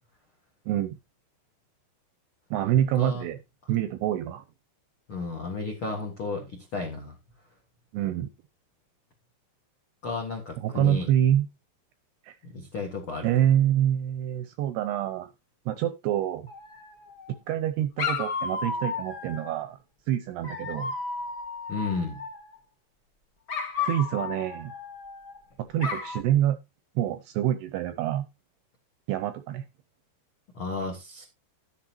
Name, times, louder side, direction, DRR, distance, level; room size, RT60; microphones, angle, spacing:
voice 1, 0.7-1.0 2.5-3.4 3.7-4.4 7.9-8.3 10.6-11.5 12.2-12.3 13.2-15.3 15.7-16.5 17.5-19.8 20.1-20.9 23.8-24.7 25.7-26.6 27.0-28.3 29.1-29.6, right 11 dB, 80° right, 2.4 m, -26 dB
voice 2, 5.1-7.1 10.0-11.1 12.5-13.3 21.7-22.2 30.5-31.2, left 3 dB, 80° left, 1.1 m, -33 dB
Dog, 16.5-17.3 18.0-19.6 20.4-22.5 23.5-25.4 25.8-26.2, left 5 dB, 55° left, 1.4 m, -33 dB
11.5 x 10.0 x 2.9 m
omnidirectional pair, 5.3 m